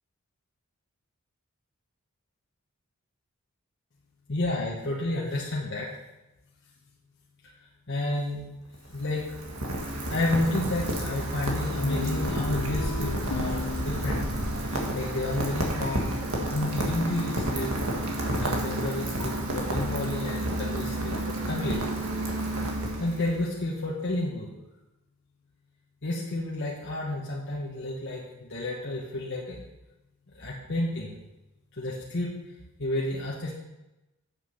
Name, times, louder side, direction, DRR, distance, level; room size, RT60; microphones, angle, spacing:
voice 1, 4.3-5.9 7.9-8.4 8.9-9.3 10.1-14.3 14.6-16.2 16.5-17.7 18.4-21.8 23.0-24.5 26.0-29.6 30.3-31.1 31.8-32.3 32.8-33.5, left 1 dB, 55° left, -4 dB, 1.3 m, -31 dB
Rain, 8.7-23.5, right 1 dB, 70° right, 1.7 m, -30 dB
Guitar, 11.8-16.2, left 4 dB, 85° left, 0.7 m, -37 dB
8.3 x 6.4 x 5.6 m, 0.99 s
head